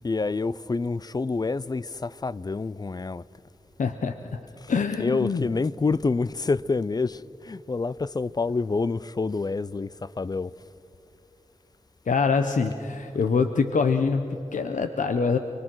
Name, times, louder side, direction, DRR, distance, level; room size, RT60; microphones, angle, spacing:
voice 1, 0.0-3.2 4.6-10.5, left 3 dB, 30° left, 0.4 m, -28 dB
voice 2, 3.8-4.2 4.7-5.5 12.1-15.4, left 5 dB, 85° left, 0.8 m, -24 dB
28.5 x 21.0 x 6.3 m
wide cardioid pair, 70°, 13 cm